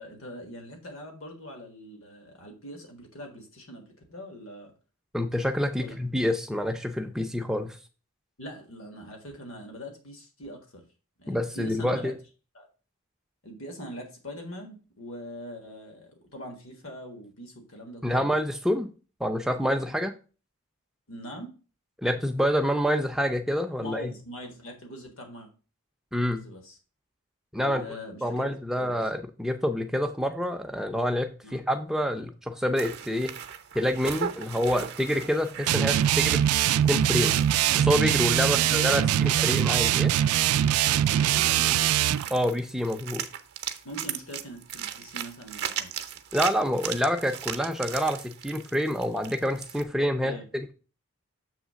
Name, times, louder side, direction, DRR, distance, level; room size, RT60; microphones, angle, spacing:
voice 1, 0.0-4.7 5.8-6.0 8.4-10.8 11.2-12.1 12.5-12.7 13.4-18.2 21.1-21.5 23.8-25.5 26.2-26.8 27.5-28.9 31.4-31.6 38.4-38.8 39.2-39.5 40.9-42.1 43.8-45.9 50.2-50.4, equal, 70° left, 3 dB, 1.6 m, -42 dB
voice 2, 5.1-7.8 11.3-12.1 18.0-18.9 19.2-20.1 22.0-24.1 26.1-26.4 27.5-27.8 28.2-33.3 33.7-36.5 36.8-37.4 37.7-40.1 42.3-43.2 46.3-50.7, equal, ahead, 5 dB, 0.5 m, -27 dB
sound 1, 32.8-49.8, right 9 dB, 50° right, 0.7 m, -39 dB
sound 2, 35.7-42.3, right 11 dB, 85° right, 0.3 m, -23 dB
7.3 x 3.3 x 6.2 m, 0.35 s
head